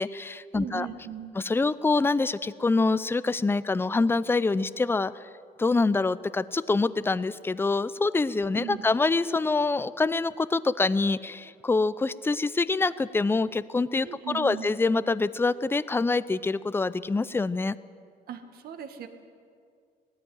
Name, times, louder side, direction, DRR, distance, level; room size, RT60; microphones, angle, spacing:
voice 1, 0.0-0.9 1.4-5.1 5.6-14.1 14.3-17.7, left 3 dB, 15° left, 16 dB, 0.6 m, -25 dB
voice 2, 0.5-1.3 8.6-8.9 14.0-14.7 18.3-19.1, right 8 dB, 65° right, 7 dB, 1.9 m, -38 dB
19.0 x 14.5 x 9.4 m, 2.3 s
cardioid pair, 110°, 17 cm